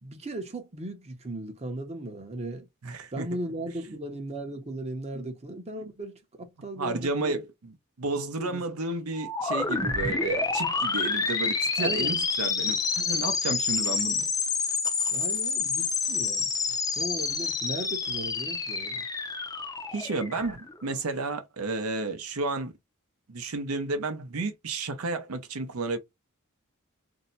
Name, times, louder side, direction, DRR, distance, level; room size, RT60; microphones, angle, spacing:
voice 1, 0.0-2.7 3.1-7.4 8.4-8.6 11.8-12.1 15.1-16.5 17.0-19.0, right 1 dB, 30° right, 0.7 m, -37 dB
voice 2, 2.8-3.3 5.1-5.3 6.8-14.3 19.9-22.7 23.3-26.0, right 3 dB, 80° right, 0.6 m, -32 dB
sound 1, 9.2-20.8, left 4 dB, 15° left, 0.5 m, -28 dB
2.7 x 2.1 x 3.9 m
head